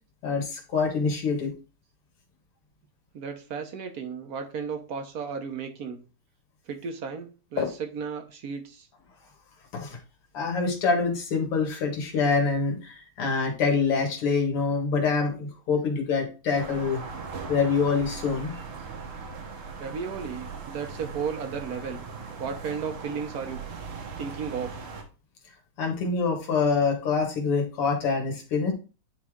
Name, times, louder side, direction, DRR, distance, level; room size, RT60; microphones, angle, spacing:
voice 1, 0.2-1.5 7.6-7.7 9.7-10.0 10.3-17.0 17.5-18.5 25.8-28.7, left 4 dB, 80° left, 1 dB, 2.6 m, -25 dB
voice 2, 3.1-6.0 6.7-8.9 19.8-22.0 22.4-23.6 24.2-24.8, right 6 dB, 55° right, 5 dB, 1.1 m, -34 dB
sound 1, 16.6-25.0, right 5 dB, 80° right, 2.2 m, -39 dB
9.9 x 3.3 x 3.6 m, 0.35 s
omnidirectional pair, 2.4 m